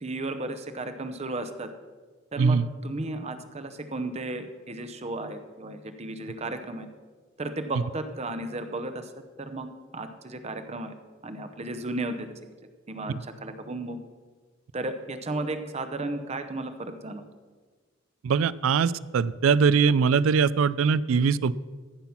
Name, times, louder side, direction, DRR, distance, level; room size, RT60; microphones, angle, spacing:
voice 1, 0.0-1.7 2.3-6.9 7.4-9.7 9.9-10.9 11.2-12.3 12.9-14.0 14.7-17.3, right 2 dB, 30° right, 8 dB, 0.7 m, -34 dB
voice 2, 18.2-21.5, right 5 dB, 80° right, 19 dB, 0.4 m, -22 dB
15.0 x 5.9 x 5.8 m, 1.4 s
head